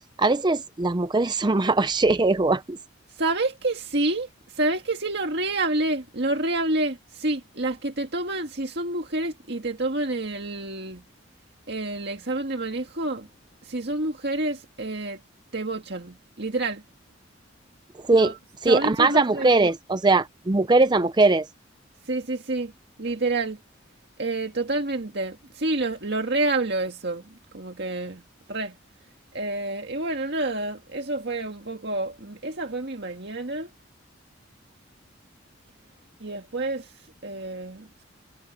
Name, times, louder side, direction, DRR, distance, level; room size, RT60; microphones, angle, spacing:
voice 1, 0.2-2.8 18.1-18.3 18.6-21.5, right 3 dB, 20° right, 0.5 m, -20 dB
voice 2, 3.1-11.0 11.7-13.3 13.6-15.2 15.5-16.8 18.1-18.4 18.7-19.7 22.0-22.7 23.0-23.6 24.2-28.2 28.5-28.8 29.3-33.7 36.2-38.0, right 2 dB, 60° right, 1.9 m, -28 dB
head